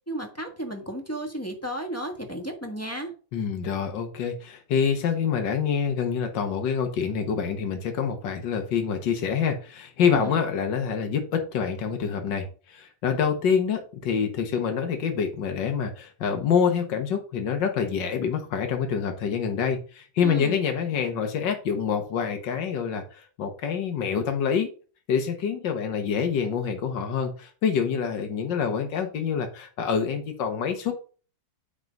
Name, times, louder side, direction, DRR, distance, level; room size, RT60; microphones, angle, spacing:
voice 1, 0.0-3.1 10.1-10.3 20.2-20.6, right 1 dB, 10° left, 3 dB, 1.3 m, -33 dB
voice 2, 3.3-24.7 25.1-31.0, left 7 dB, 85° left, 6 dB, 1.8 m, -26 dB
8.7 x 3.9 x 5.2 m, 0.38 s
omnidirectional pair, 1.9 m